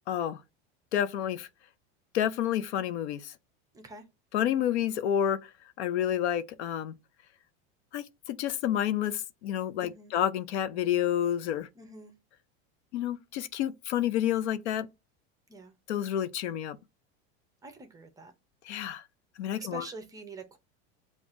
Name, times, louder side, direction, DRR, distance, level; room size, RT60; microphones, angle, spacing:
voice 1, 0.1-0.4 0.9-1.5 2.1-3.3 4.3-5.5 5.8-6.9 7.9-11.7 12.9-14.9 15.9-16.8 18.7-19.0 19.4-19.8, left 10 dB, 90° left, 0.7 m, -29 dB
voice 2, 3.7-4.1 9.8-10.2 11.7-12.1 15.5-15.7 17.6-18.3 19.5-20.6, right 2 dB, 10° right, 0.6 m, -45 dB
7.1 x 2.4 x 2.5 m
supercardioid pair, 150°, 32 cm